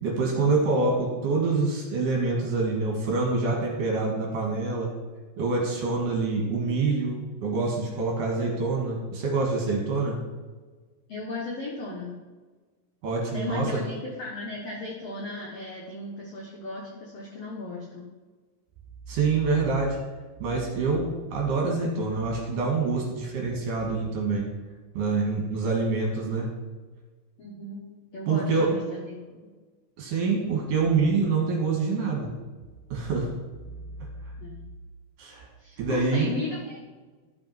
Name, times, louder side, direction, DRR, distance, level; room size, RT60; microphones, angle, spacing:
voice 1, 0.0-4.9 5.4-10.2 13.0-13.8 19.1-20.0 20.4-24.5 24.9-26.5 28.3-28.7 30.0-32.3 32.9-33.3 35.2-35.5 35.8-36.3, right 4 dB, 60° right, -1 dB, 2.6 m, -26 dB
voice 2, 11.1-12.2 13.3-18.1 27.4-27.8 28.1-29.5 34.4-34.6 35.6-36.8, left 2 dB, 85° left, -2 dB, 1.4 m, -36 dB
12.5 x 5.5 x 4.5 m, 1.3 s
omnidirectional pair, 5.0 m